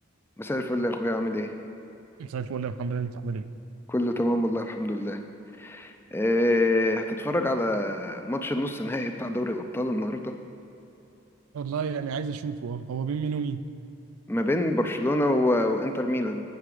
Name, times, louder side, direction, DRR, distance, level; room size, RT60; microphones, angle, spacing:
voice 1, 0.4-1.5 3.9-5.2 5.6-10.3 14.3-16.4, left 1 dB, 10° left, 6 dB, 0.3 m, -26 dB
voice 2, 2.2-3.4 11.5-13.6, right 5 dB, 85° right, 12 dB, 0.4 m, -31 dB
9.2 x 5.8 x 4.8 m, 3.0 s
head